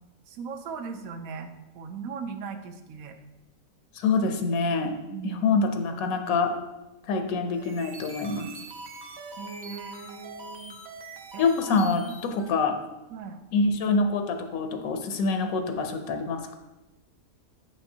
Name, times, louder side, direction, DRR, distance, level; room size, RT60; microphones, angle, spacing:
voice 1, 0.3-3.2 5.1-5.6 7.2-7.5 9.4-10.8 11.3-11.5 12.1-12.2 13.1-13.4, right 5 dB, 80° right, 7 dB, 1.0 m, -39 dB
voice 2, 3.9-4.9 5.2-6.5 7.1-8.5 11.4-12.8 13.5-16.5, left 4 dB, 85° left, 5 dB, 1.1 m, -25 dB
sound 1, 7.5-12.5, right 2 dB, 60° right, 0.4 m, -43 dB
7.1 x 5.2 x 2.7 m, 1.1 s
omnidirectional pair, 1.5 m